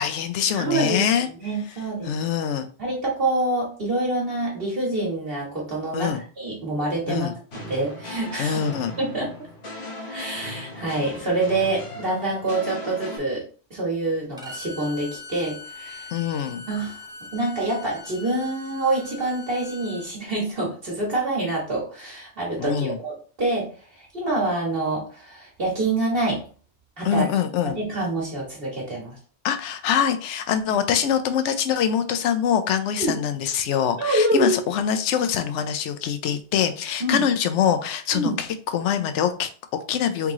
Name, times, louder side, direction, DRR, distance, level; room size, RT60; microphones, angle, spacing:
voice 1, 0.0-1.3 2.0-2.7 5.9-6.2 7.1-7.3 8.4-8.9 16.1-16.6 22.6-23.0 27.0-27.8 29.4-40.3, left 8 dB, 75° left, 8 dB, 0.9 m, -24 dB
voice 2, 0.5-1.0 1.4-2.1 2.8-8.6 9.0-9.3 10.1-13.4 13.7-16.1 16.6-16.9 17.3-23.7 24.0-26.4 27.0-27.3 27.6-29.2 33.0-33.2 34.0-34.6 37.0-37.2 38.1-38.4, right 2 dB, 50° right, -4 dB, 1.6 m, -26 dB
sound 1, 7.5-13.2, left 1 dB, 50° left, 0.9 m, -38 dB
Bowed string instrument, 14.4-20.1, left 3 dB, 5° right, 0.5 m, -41 dB
3.6 x 3.0 x 3.6 m, 0.39 s
omnidirectional pair, 1.2 m